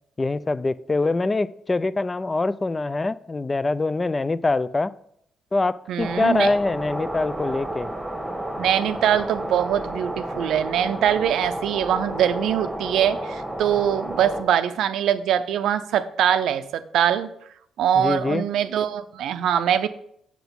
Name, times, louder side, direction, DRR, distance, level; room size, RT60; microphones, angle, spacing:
voice 1, 0.2-4.9 5.5-7.9 18.0-18.5, left 3 dB, 25° left, 17 dB, 0.4 m, -24 dB
voice 2, 5.9-6.5 8.6-17.3 17.8-19.9, right 9 dB, 80° right, 11 dB, 0.5 m, -23 dB
sound 1, 6.0-14.4, right 1 dB, 10° right, 1.3 m, -31 dB
6.1 x 6.0 x 7.0 m, 0.72 s
cardioid pair, 90°, 0 cm